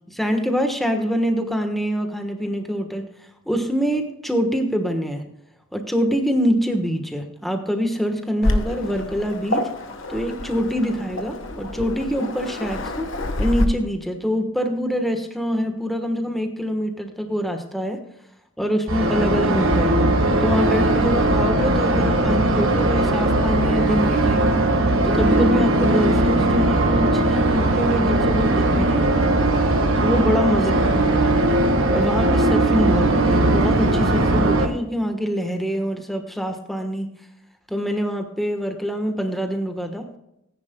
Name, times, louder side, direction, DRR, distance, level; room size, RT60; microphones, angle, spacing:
voice 1, 0.1-5.2 5.7-9.7 10.1-13.1 13.4-18.0 18.6-20.1 20.4-24.6 25.0-29.3 30.0-30.8 31.9-37.1 37.7-40.1, equal, ahead, 4 dB, 1.2 m, -25 dB
Waves surf, 8.4-13.6, left 1 dB, 60° left, 1.2 m, -27 dB
sound 1, 18.9-34.7, right 1 dB, 70° right, 1.5 m, -19 dB
18.5 x 10.0 x 2.2 m, 0.83 s
head